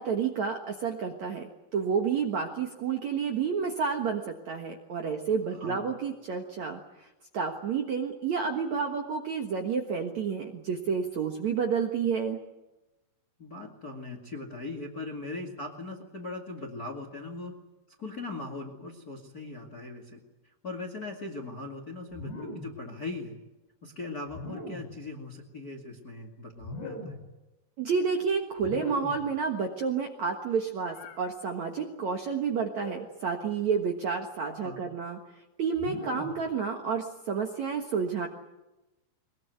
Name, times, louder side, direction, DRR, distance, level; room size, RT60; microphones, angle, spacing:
voice 1, 0.0-6.8 7.3-12.4 27.8-35.2 35.6-38.3, right 6 dB, 60° right, 3 dB, 2.1 m, -30 dB
voice 2, 5.5-5.8 13.4-17.5 18.0-23.4 23.8-27.2 34.6-34.8, left 2 dB, 30° left, 5 dB, 1.8 m, -40 dB
sound 1, 22.1-22.9 24.3-25.0 26.6-27.3 28.6-29.3 30.9-31.3 32.7-33.2 34.3-34.7 35.8-36.5, left 1 dB, 75° left, 6.7 m, -41 dB
22.5 x 21.5 x 9.4 m, 1.0 s
omnidirectional pair, 5.1 m